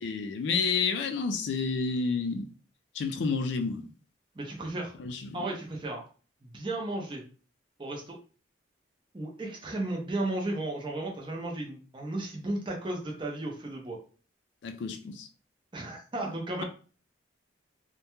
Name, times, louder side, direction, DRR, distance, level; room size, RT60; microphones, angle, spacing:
voice 1, 0.0-2.5 3.0-3.8 5.0-5.4 14.6-15.3, left 5 dB, 65° left, 0.3 m, -30 dB
voice 2, 4.4-4.9 5.3-6.0 6.4-7.2 7.8-8.2 9.1-14.0 15.7-16.6, right 2 dB, 25° right, 0.5 m, -34 dB
2.2 x 2.1 x 2.9 m
head